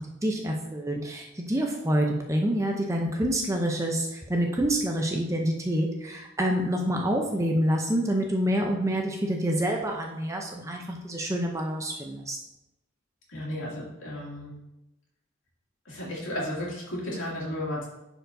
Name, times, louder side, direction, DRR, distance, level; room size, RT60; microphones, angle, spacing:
voice 1, 0.0-12.4, equal, 15° right, 1 dB, 0.6 m, -27 dB
voice 2, 13.3-14.6 15.8-17.9, left 1 dB, 70° left, -6 dB, 2.5 m, -33 dB
10.5 x 4.6 x 2.7 m, 0.93 s
head